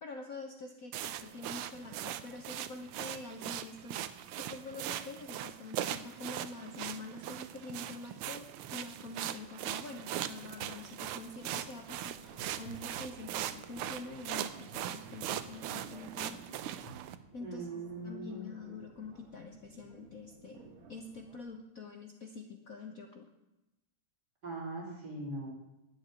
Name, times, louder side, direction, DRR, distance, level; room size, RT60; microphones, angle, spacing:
voice 1, 0.0-8.5 8.7-16.4 17.3-23.3, left 3 dB, 55° left, 4 dB, 1.1 m, -46 dB
sound 1, 0.9-17.2, right 12 dB, 85° right, 1.6 m, -40 dB
sound 2, 11.9-21.4, right 3 dB, 70° right, 2.2 m, -54 dB
voice 2, 17.4-18.5 24.4-25.5, right 2 dB, 50° right, -3 dB, 4.4 m, -40 dB
12.0 x 6.7 x 9.6 m, 0.96 s
omnidirectional pair, 2.3 m